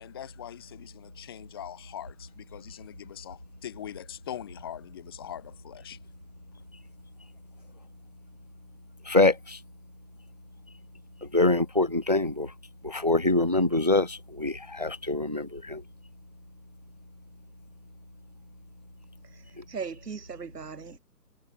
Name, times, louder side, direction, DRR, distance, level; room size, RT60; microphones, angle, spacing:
voice 1, 0.0-6.0, left 11 dB, 15° left, 1.5 m, -42 dB
voice 2, 9.1-9.6 11.3-12.5 12.8-15.8, left 2 dB, 25° right, 0.5 m, -24 dB
voice 3, 19.3-21.0, right 5 dB, 75° right, 7.2 m, -39 dB
hypercardioid pair, 180°, 48 cm